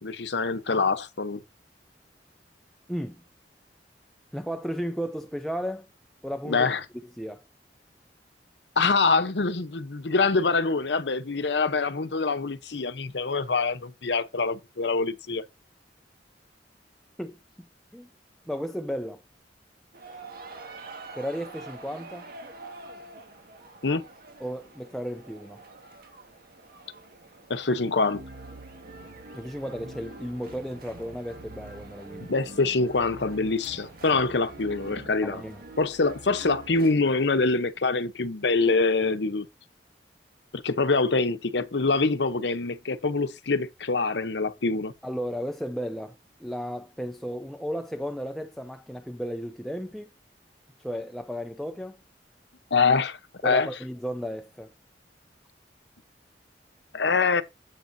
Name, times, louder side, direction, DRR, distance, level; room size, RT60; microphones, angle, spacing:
voice 1, 0.0-1.4 6.5-6.8 8.8-15.4 23.8-24.0 27.5-28.2 32.2-35.4 35.8-39.5 40.5-44.9 52.7-53.2 53.4-53.7 56.9-57.4, left 4 dB, 75° left, 0.9 m, -25 dB
voice 2, 2.9-3.2 4.3-5.9 6.2-6.7 7.2-7.4 17.2-17.4 17.9-18.1 18.5-19.2 21.2-22.3 24.4-25.6 29.3-32.3 35.2-35.6 45.0-50.1 50.8-52.0 53.4-54.7, equal, ahead, 0.5 m, -34 dB
sound 1, 19.9-36.9, right 2 dB, 60° right, 1.7 m, -45 dB
10.5 x 8.2 x 2.7 m
head